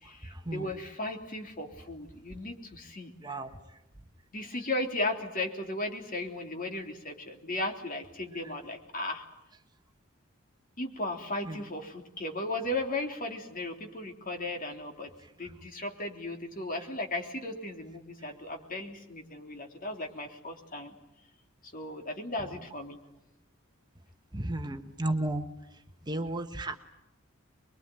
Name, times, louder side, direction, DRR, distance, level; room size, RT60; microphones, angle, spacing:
voice 1, 0.0-3.1 4.3-9.3 10.8-15.1 15.4-20.9 21.6-23.0, left 2 dB, 40° left, 3 dB, 3.4 m, -36 dB
voice 2, 24.3-25.4 26.1-26.8, right 2 dB, 20° right, 6 dB, 1.3 m, -32 dB
24.5 x 23.0 x 9.3 m, 0.87 s
head